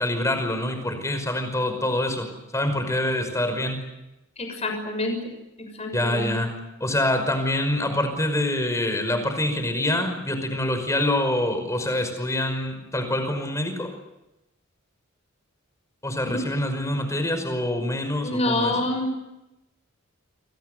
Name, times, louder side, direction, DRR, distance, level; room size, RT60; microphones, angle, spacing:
voice 1, 0.0-3.8 5.9-13.9 16.0-18.8, left 1 dB, 15° left, 7 dB, 5.5 m, -26 dB
voice 2, 4.4-5.2 5.6-6.3 16.7-17.0 18.2-19.2, left 1 dB, 30° left, 4 dB, 6.5 m, -27 dB
29.5 x 24.0 x 6.9 m, 0.95 s
head